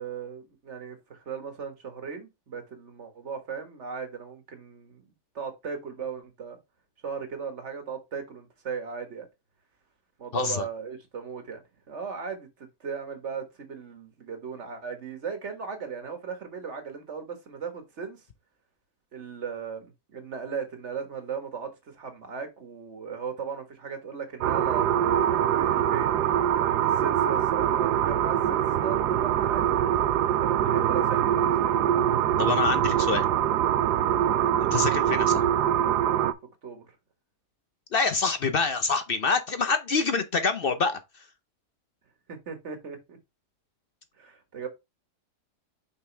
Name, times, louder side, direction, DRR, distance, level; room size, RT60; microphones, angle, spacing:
voice 1, 0.0-5.0 5.4-6.6 7.0-9.3 10.2-11.6 11.9-18.2 19.1-24.9 25.2-26.1 26.6-29.7 30.3-31.8 34.1-34.5 36.6-37.0 42.3-43.2 44.2-44.7, right 6 dB, 45° right, 1.7 m, -37 dB
voice 2, 10.3-10.6 32.4-33.2 34.7-35.4 37.9-41.0, left 4 dB, 55° left, 0.6 m, -26 dB
sound 1, 24.4-36.3, right 10 dB, 85° right, 1.2 m, -24 dB
5.9 x 5.3 x 3.3 m
omnidirectional pair, 1.7 m